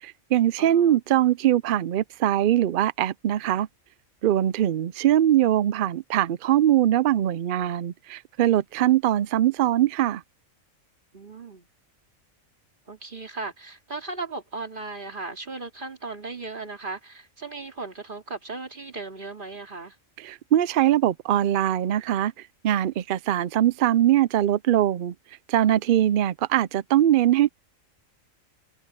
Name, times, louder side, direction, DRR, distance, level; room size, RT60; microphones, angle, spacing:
voice 1, 0.0-3.7 4.2-10.2 20.2-22.3 22.6-25.1 25.5-27.5, right 12 dB, 70° right, 0.5 m, -22 dB
voice 2, 0.6-1.0 11.1-11.7 12.9-20.0, right 3 dB, 40° right, 2.8 m, -37 dB
omnidirectional pair, 1.4 m